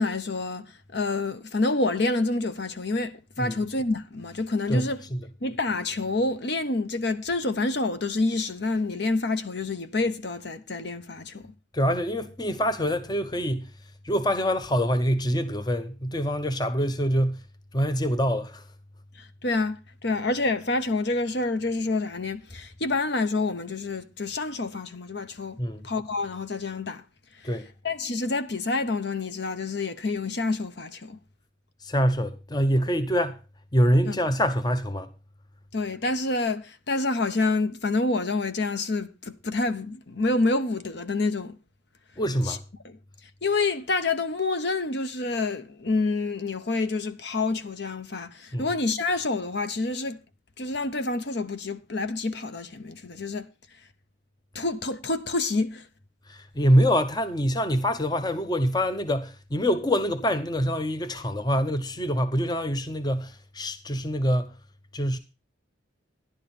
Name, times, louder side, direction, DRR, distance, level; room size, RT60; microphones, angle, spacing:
voice 1, 0.0-5.1 5.4-11.5 19.1-27.0 27.4-27.5 27.8-31.2 34.0-34.2 35.7-41.6 42.4-42.6 42.8-43.0 43.4-50.2 50.6-53.5 54.5-55.9, left 3 dB, 55° left, 1.0 m, -28 dB
voice 2, 4.7-5.3 11.7-13.7 14.0-17.4 17.7-18.6 25.6-25.9 27.4-27.7 31.8-33.4 33.7-35.1 42.2-42.6 48.5-48.7 56.3-64.5 64.9-65.2, equal, 20° left, 0.7 m, -25 dB
12.0 x 11.0 x 4.3 m
head